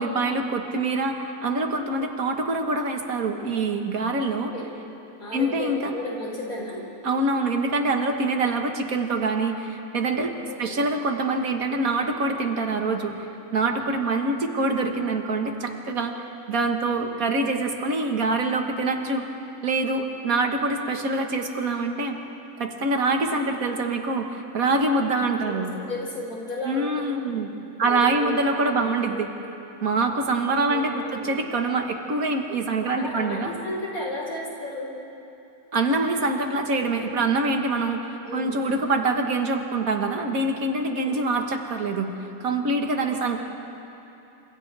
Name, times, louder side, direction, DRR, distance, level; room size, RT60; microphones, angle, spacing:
voice 1, 0.0-4.5 5.3-6.0 7.0-10.3 10.6-13.3 13.5-19.2 19.6-22.2 22.6-25.7 26.6-27.5 27.8-29.3 29.8-33.5 35.7-38.0 38.3-42.2 42.4-43.4, right 3 dB, 75° right, 4 dB, 1.9 m, -25 dB
voice 2, 4.3-4.7 5.2-6.8 10.4-10.8 25.4-27.4 27.8-28.3 28.7-29.5 30.7-31.3 33.0-34.9 38.2-38.6 40.9-41.1, left 2 dB, 75° left, -3 dB, 4.9 m, -34 dB
29.0 x 27.5 x 3.4 m, 2.9 s
omnidirectional pair, 1.5 m